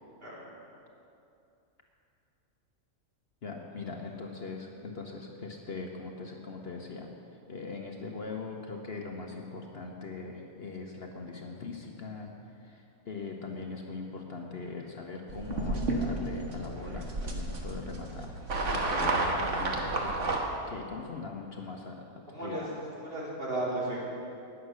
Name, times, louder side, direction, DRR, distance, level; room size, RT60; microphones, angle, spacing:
voice 1, 3.4-7.1 7.5-12.3 12.6-18.4 18.6-22.8, left 4 dB, 50° left, 1 dB, 1.1 m, -41 dB
sound 1, 15.3-20.4, right 2 dB, 60° right, 1.7 m, -31 dB
voice 2, 22.3-24.0, right 2 dB, 40° right, -6 dB, 3.5 m, -35 dB
19.0 x 7.4 x 6.3 m, 2.7 s
omnidirectional pair, 1.5 m